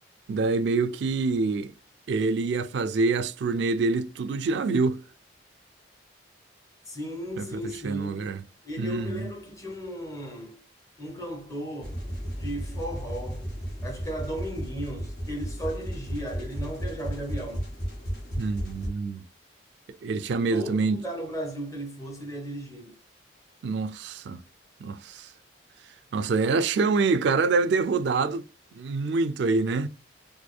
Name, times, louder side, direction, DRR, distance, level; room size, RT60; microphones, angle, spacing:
voice 1, 0.3-1.7 2.1-5.0 7.4-8.4 8.8-9.3 18.4-19.2 20.0-21.0 23.6-24.4 24.8-25.3 26.1-28.4 28.7-29.9, right 4 dB, 65° right, 0.3 m, -26 dB
voice 2, 6.9-8.4 8.6-10.6 11.0-12.0 12.3-13.5 13.8-17.7 20.5-22.9, right 1 dB, 15° left, 1.1 m, -36 dB
sound 1, 11.8-18.9, equal, 55° left, 1.7 m, -34 dB
4.3 x 2.5 x 2.3 m
head